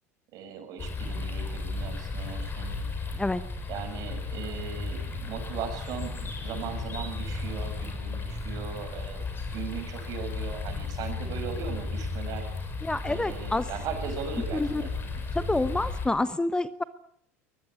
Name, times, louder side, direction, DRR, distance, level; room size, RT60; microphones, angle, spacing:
voice 1, 0.3-2.8 3.7-9.2 9.5-12.5 13.1-14.9, right 7 dB, 50° right, 7 dB, 7.2 m, -38 dB
sound 1, 0.8-16.1, left 3 dB, 30° left, 7.9 m, -34 dB
voice 2, 12.8-13.7 14.5-14.8 15.3-16.8, left 2 dB, 10° left, 14 dB, 1.1 m, -28 dB
23.5 x 20.5 x 8.6 m, 0.66 s
hypercardioid pair, 80°, 8 cm